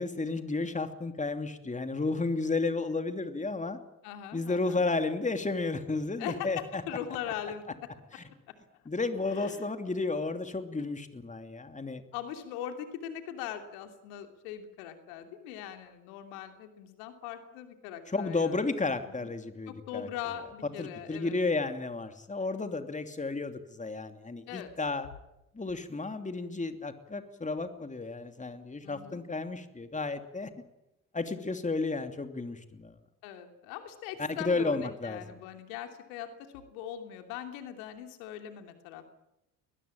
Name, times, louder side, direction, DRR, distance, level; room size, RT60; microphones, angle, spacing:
voice 1, 0.0-3.8 4.3-6.8 8.1-8.2 8.8-12.0 18.1-20.1 20.8-25.1 25.5-30.5 31.1-32.9 34.2-35.2, left 3 dB, 15° left, 8 dB, 2.9 m, -32 dB
voice 2, 4.0-4.8 6.2-7.7 9.3-9.7 10.8-10.9 12.1-18.5 19.2-19.3 19.7-21.4 24.5-24.7 28.8-29.2 33.2-39.1, left 10 dB, 70° left, 6 dB, 3.0 m, -41 dB
21.5 x 21.5 x 8.8 m, 0.90 s
hypercardioid pair, 55°, 44 cm